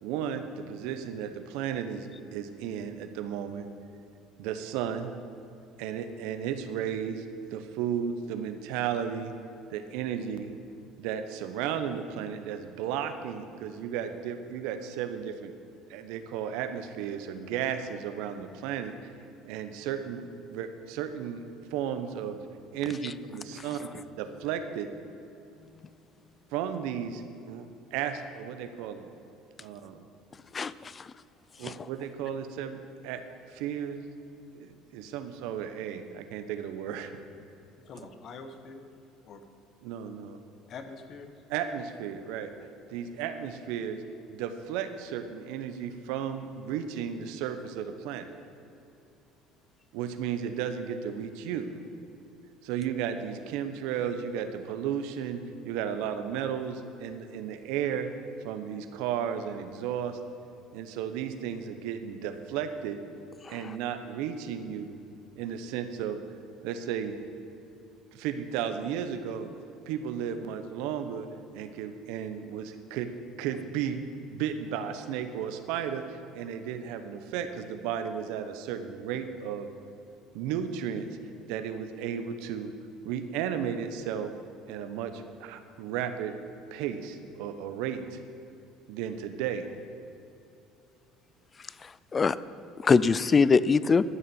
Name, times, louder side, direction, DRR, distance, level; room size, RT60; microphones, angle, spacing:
voice 1, 0.0-3.6 4.4-5.1 5.8-7.2 7.5-9.3 9.7-10.5 11.0-15.5 15.9-19.1 19.4-21.4 21.7-22.4 22.7-24.9 26.5-27.7 27.9-29.1 29.6-30.0 31.6-33.2 33.5-34.0 34.5-37.1 39.8-40.4 41.5-42.5 42.9-44.0 44.3-48.3 49.9-51.7 52.6-58.1 58.4-60.2 60.7-63.0 63.5-64.9 65.4-66.2 66.6-67.1 68.1-69.5 69.9-71.3 71.5-73.1 73.4-74.0 74.3-79.7 80.3-81.1 81.5-82.7 83.0-84.3 84.6-86.3 86.7-88.2 88.9-89.6, right 8 dB, 75° right, 9 dB, 0.9 m, -34 dB
voice 2, 30.5-31.1 31.6-31.9 63.4-63.5 91.8-92.4 92.8-94.0, left 5 dB, 30° left, 17 dB, 0.4 m, -23 dB
voice 3, 37.8-38.9 39.2-39.4 40.7-41.3, left 4 dB, 50° left, 8 dB, 1.2 m, -45 dB
12.5 x 6.8 x 7.0 m, 2.7 s
supercardioid pair, 85°, 0 cm